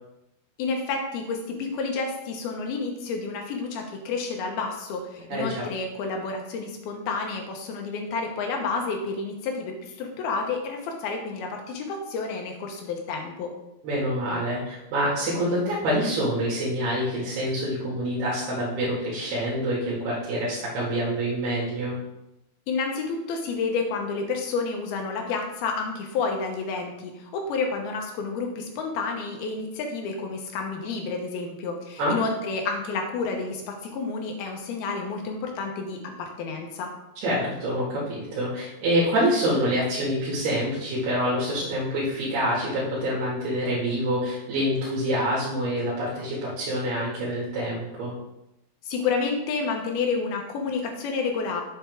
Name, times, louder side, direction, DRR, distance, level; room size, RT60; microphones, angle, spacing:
voice 1, 0.6-13.5 22.7-36.9 48.9-51.6, left 4 dB, 75° left, 2 dB, 2.9 m, -30 dB
voice 2, 5.3-5.7 13.8-22.0 32.0-32.2 37.2-48.1, equal, 75° right, -8 dB, 3.9 m, -26 dB
7.9 x 7.2 x 3.5 m, 0.90 s
omnidirectional pair, 4.6 m